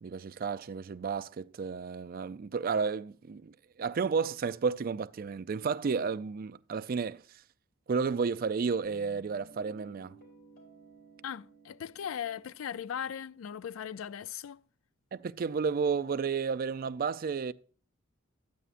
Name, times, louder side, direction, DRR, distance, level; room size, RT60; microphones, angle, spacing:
voice 1, 0.0-7.4 7.9-10.2 15.1-17.5, right 5 dB, 45° right, 0.4 m, -32 dB
Guitar, 8.8-13.9, right 3 dB, 50° left, 3.5 m, -57 dB
voice 2, 11.2-14.6, left 8 dB, 75° left, 0.3 m, -38 dB
12.5 x 9.1 x 2.5 m
head